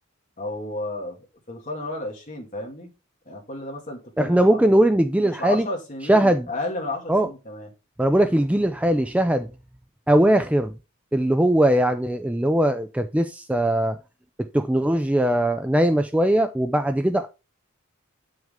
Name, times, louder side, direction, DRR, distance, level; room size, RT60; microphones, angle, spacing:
voice 1, 0.4-2.9 3.3-4.6 5.2-7.7, left 2 dB, 35° left, 2.2 m, -33 dB
voice 2, 4.2-5.7 6.1-6.5 7.1-7.3 8.0-9.5 10.1-10.7 11.1-14.0 14.5-17.3, right 1 dB, 5° right, 0.4 m, -20 dB
8.6 x 6.3 x 3.7 m
head